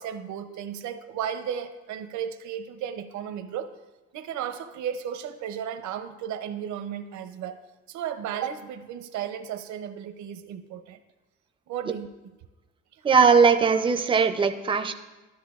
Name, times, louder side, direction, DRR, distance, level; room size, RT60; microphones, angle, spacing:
voice 1, 0.0-3.7 4.1-7.6 7.9-11.0 11.7-12.1, right 9 dB, 75° right, 8 dB, 0.6 m, -34 dB
voice 2, 13.0-14.9, right 5 dB, 20° right, 8 dB, 0.4 m, -19 dB
13.0 x 10.5 x 2.4 m, 1.2 s
cardioid pair, 170°, 29 cm